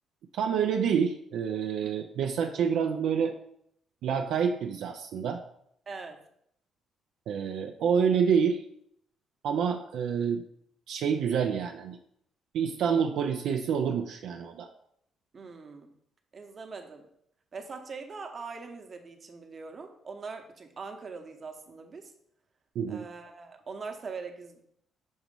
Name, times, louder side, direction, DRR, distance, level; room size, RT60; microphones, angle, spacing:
voice 1, 0.3-3.4 4.0-5.4 7.3-8.6 9.4-10.4 10.9-12.0 12.5-14.7 22.8-23.0, right 7 dB, 80° right, 4 dB, 0.4 m, -27 dB
voice 2, 5.9-6.2 15.3-15.9 16.3-17.1 17.5-22.1 22.9-24.6, right 4 dB, 40° right, 5 dB, 0.9 m, -42 dB
6.2 x 3.0 x 5.3 m, 0.71 s
cardioid pair, 90°, 0 cm